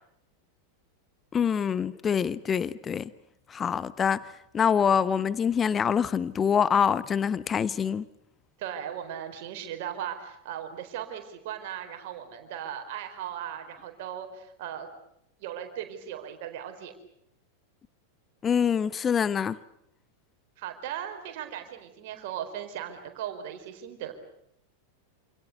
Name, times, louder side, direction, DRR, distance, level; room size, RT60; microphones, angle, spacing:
voice 1, 1.3-3.1 3.5-8.0 18.4-19.6, left 7 dB, 20° left, 1.0 m, -25 dB
voice 2, 8.6-14.9 15.4-16.9 20.6-24.1, right 10 dB, 50° right, 4.4 m, -37 dB
28.5 x 27.5 x 6.8 m
figure-of-eight pair, 90°, 0 cm